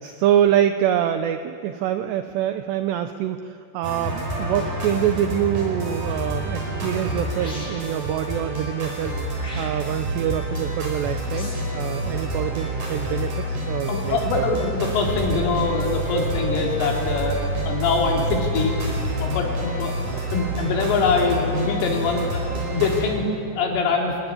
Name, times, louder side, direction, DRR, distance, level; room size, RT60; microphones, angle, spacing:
voice 1, 0.0-9.2 9.6-14.5, right 10 dB, 85° right, 8 dB, 2.4 m, -25 dB
sound 1, 3.8-23.0, right 1 dB, 40° right, 5.5 m, -28 dB
Sifi Gun, 7.4-8.1 9.4-10.1 11.3-11.8, left 1 dB, 15° left, 4.2 m, -39 dB
voice 2, 13.9-17.4 17.7-18.7 19.2-19.9 20.3-24.2, left 4 dB, 75° left, 0 dB, 5.5 m, -23 dB
25.5 x 16.0 x 9.9 m, 2.5 s
omnidirectional pair, 5.8 m